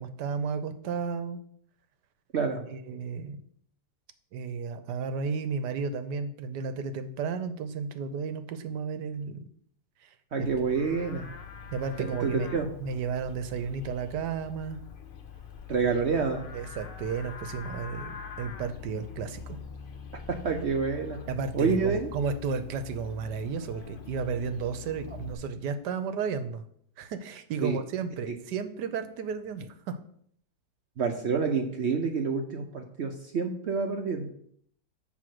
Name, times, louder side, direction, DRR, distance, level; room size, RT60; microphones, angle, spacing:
voice 1, 0.0-1.4 2.7-3.4 4.3-9.4 10.0-10.5 11.7-12.5 12.8-14.8 15.7-15.8 16.5-19.6 21.3-26.6 27.0-30.0, right 5 dB, 80° right, 10 dB, 1.3 m, -33 dB
voice 2, 10.3-11.3 12.0-12.7 15.7-16.5 20.3-21.2 21.5-22.1 27.6-27.8 31.0-34.3, right 5 dB, 60° right, 4 dB, 0.7 m, -28 dB
Livestock farm animals working animals, 10.4-25.3, left 6 dB, 60° left, 0.5 m, -44 dB
7.5 x 3.7 x 6.3 m, 0.64 s
omnidirectional pair, 1.8 m